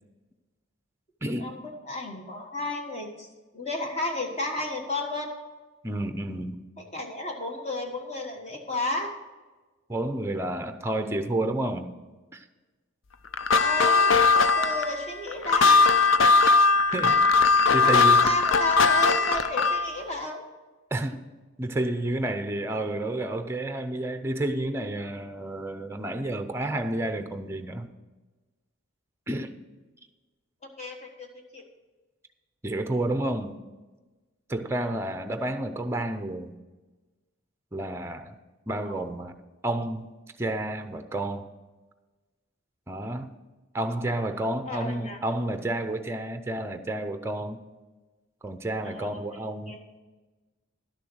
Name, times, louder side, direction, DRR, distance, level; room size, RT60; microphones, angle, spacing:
voice 1, 1.2-1.6 5.8-6.6 9.9-11.9 12.3-12.4 16.9-17.2 17.7-18.3 20.9-21.2 21.6-27.9 29.3-29.6 32.6-33.6 34.5-36.5 37.7-38.3 38.7-39.3 39.6-40.1 40.4-41.5 42.9-43.3 43.7-47.6 48.4-49.8, right 1 dB, 10° right, 8 dB, 0.6 m, -30 dB
voice 2, 1.9-3.3 3.5-5.4 6.9-9.1 13.5-16.0 17.8-20.4 30.8-31.3 31.5-31.6 38.8-39.0 44.7-45.2 48.8-49.4 49.7-49.8, left 2 dB, 30° left, 2 dB, 1.4 m, -33 dB
sound 1, 13.3-19.9, left 4 dB, 60° left, 0.5 m, -20 dB
11.5 x 6.8 x 6.2 m, 1.2 s
head